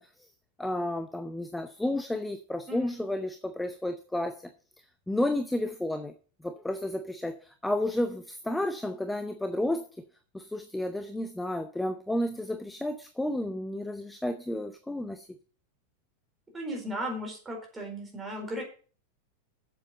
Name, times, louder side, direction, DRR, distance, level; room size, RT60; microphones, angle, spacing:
voice 1, 0.6-4.5 5.1-6.1 6.4-10.0 10.3-15.3, left 1 dB, 5° left, 0.7 m, -32 dB
voice 2, 16.5-18.6, equal, 15° right, 4.4 m, -35 dB
8.3 x 7.5 x 6.6 m
figure-of-eight pair, 90°, 0 cm